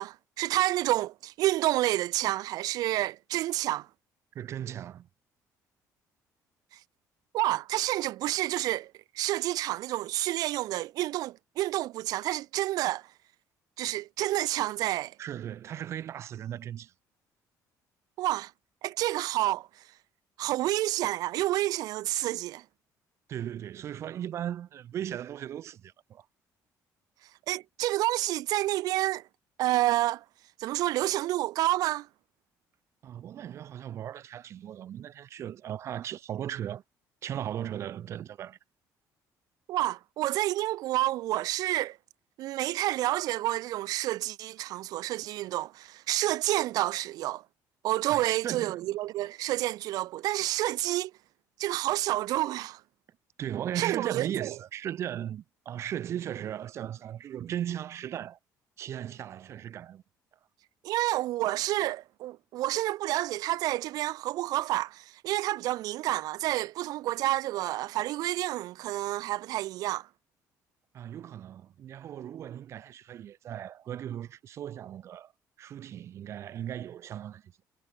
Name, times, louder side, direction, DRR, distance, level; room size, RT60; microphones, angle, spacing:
voice 1, 0.0-3.9 7.3-13.1 13.8-15.1 18.2-18.5 18.8-19.7 20.4-22.6 27.5-29.2 29.6-30.2 30.6-32.1 39.7-42.0 42.4-47.4 47.8-51.1 51.6-52.8 53.7-54.5 60.8-70.1, right 16 dB, 70° right, 2.7 m, -29 dB
voice 2, 4.3-5.1 15.2-16.9 23.3-26.3 33.0-36.8 37.2-38.6 48.1-48.9 53.4-58.4 58.8-60.0 70.9-75.3 75.6-77.5, right 10 dB, 45° right, 4.0 m, -37 dB
cardioid pair, 180°, 7 cm